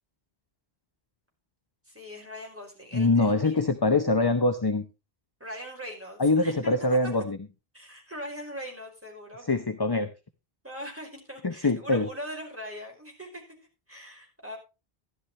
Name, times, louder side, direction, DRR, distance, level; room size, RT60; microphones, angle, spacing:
voice 1, 1.9-3.6 5.4-7.1 7.7-9.5 10.6-13.4 13.9-14.6, equal, 10° right, 0 dB, 5.3 m, -41 dB
voice 2, 2.9-4.8 6.2-7.4 9.5-10.1 11.4-12.1, left 2 dB, 25° left, 8 dB, 0.8 m, -24 dB
14.0 x 11.5 x 3.2 m, 0.28 s
omnidirectional pair, 1.1 m